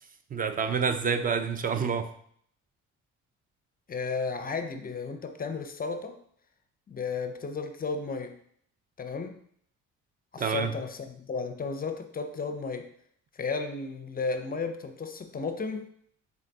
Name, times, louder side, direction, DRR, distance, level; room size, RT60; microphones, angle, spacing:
voice 1, 0.3-2.1 10.4-10.7, right 6 dB, 30° right, 9 dB, 0.4 m, -28 dB
voice 2, 3.9-6.2 6.9-8.4 9.0-9.4 10.3-12.9 13.3-15.9, left 4 dB, 30° left, 7 dB, 0.5 m, -34 dB
3.8 x 3.7 x 3.4 m, 0.65 s
cardioid pair, 90°, 30 cm